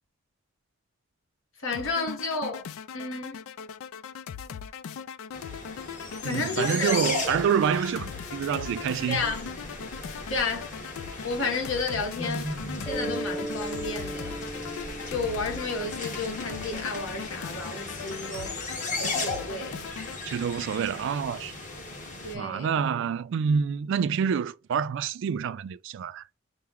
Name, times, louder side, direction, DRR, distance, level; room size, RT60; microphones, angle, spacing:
voice 1, 1.6-2.7 2.9-3.4 6.2-6.9 9.1-9.5 10.3-10.7 11.2-12.5 12.8-14.4 15.1-18.6 19.0-19.8 22.2-22.8, left 3 dB, 70° left, 1.1 m, -31 dB
sound 1, 1.7-20.2, left 7 dB, 90° left, 0.4 m, -40 dB
sound 2, 5.3-22.3, left 2 dB, 40° left, 1.2 m, -37 dB
voice 2, 6.2-9.2 20.3-21.5 22.3-26.2, right 7 dB, 65° right, 0.3 m, -27 dB
Mallet percussion, 12.9-17.3, right 1 dB, 5° left, 0.4 m, -38 dB
5.6 x 2.0 x 3.6 m
head